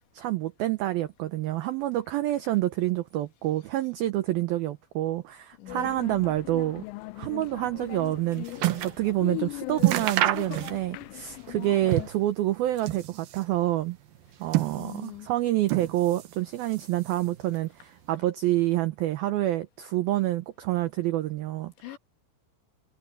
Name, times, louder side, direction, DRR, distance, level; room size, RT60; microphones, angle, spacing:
voice 1, 0.1-6.8 7.2-14.0 14.4-21.7, right 15 dB, 90° right, 2.1 m, -28 dB
voice 2, 5.6-5.9 14.7-15.3 21.8-22.0, left 12 dB, 70° left, 4.5 m, -42 dB
sound 1, 5.7-12.1, left 24 dB, 90° left, 3.1 m, -39 dB
sound 2, 7.9-9.0 9.4-9.5 9.8-11.1 11.4-12.3 12.7-13.5 14.2-15.2 15.6-16.4 16.6-17.4 18.1-18.2, right 15 dB, 70° right, 2.4 m, -29 dB
omnidirectional pair, 5.5 m